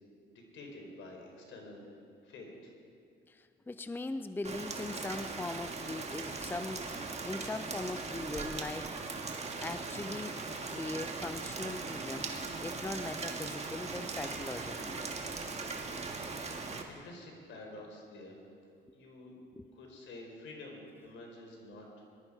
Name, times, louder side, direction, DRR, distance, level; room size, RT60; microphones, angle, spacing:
voice 1, 0.3-1.9 2.2-2.7 16.3-18.4 18.9-19.3 19.7-22.0, left 2 dB, 75° left, 1 dB, 3.9 m, -49 dB
voice 2, 3.3-9.0 9.6-12.3 12.6-15.1 19.6-19.7, left 2 dB, 10° left, 11 dB, 0.5 m, -40 dB
Rain, 4.4-16.8, right 3 dB, 35° right, 1.6 m, -39 dB
20.0 x 12.0 x 4.9 m, 2.3 s
cardioid pair, 90°, 20 cm